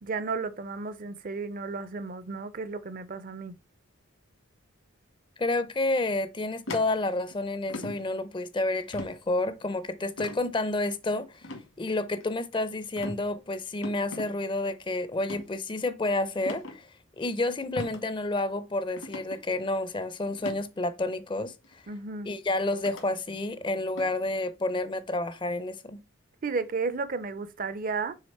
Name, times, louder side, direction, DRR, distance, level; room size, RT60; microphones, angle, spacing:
voice 1, 0.0-3.6 21.9-22.3 26.4-28.1, right 4 dB, 40° right, 0.5 m, -33 dB
voice 2, 5.4-11.5 11.8-16.9 17.2-21.5 22.3-26.0, left 2 dB, 25° left, 0.5 m, -30 dB
sound 1, 6.7-7.3 7.7-8.0 8.9-9.1 10.2-10.4 11.4-11.6 12.2-12.6 13.0-13.2 13.8-14.3 15.2-15.4 16.5-16.8 17.8-18.0 18.4-18.5 19.0-19.4 20.3-20.6 21.6-21.7 22.9-23.0 24.0-24.2, left 1 dB, 75° left, 1.9 m, -38 dB
6.5 x 3.8 x 4.2 m
head